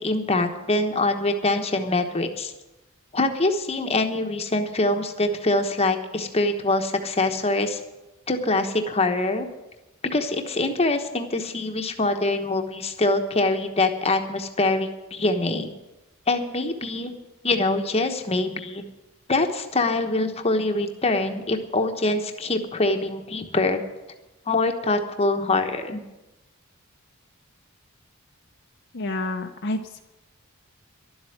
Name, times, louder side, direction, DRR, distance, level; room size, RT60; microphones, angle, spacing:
voice 1, 0.0-2.5 3.1-7.8 8.3-9.5 10.1-15.7 16.3-17.2 17.4-18.8 19.3-23.8 24.5-26.0, left 2 dB, 30° left, 5 dB, 1.1 m, -24 dB
voice 2, 28.9-30.0, left 2 dB, 55° left, 3 dB, 0.8 m, -29 dB
12.0 x 7.9 x 9.9 m, 0.99 s
head